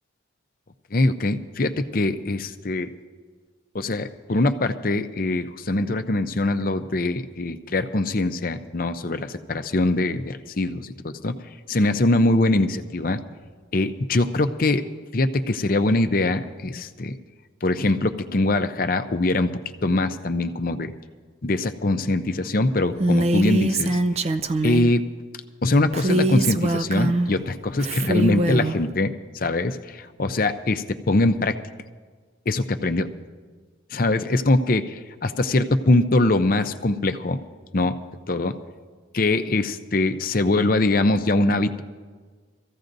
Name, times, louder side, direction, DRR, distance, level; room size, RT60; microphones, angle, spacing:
voice 1, 0.9-2.9 3.7-11.3 11.7-13.2 13.7-14.8 15.1-17.1 17.6-19.5 19.8-20.9 21.4-24.0 24.6-25.1 25.6-31.6 32.5-33.1 33.9-37.4 37.7-37.9 38.3-38.6 39.1-41.8, left 2 dB, 45° left, 9 dB, 0.6 m, -22 dB
Female speech woman speaking, 23.0-24.9 25.9-27.3 27.8-28.8, right 2 dB, 35° right, 0.4 m, -23 dB
24.0 x 15.0 x 2.6 m, 1.5 s
head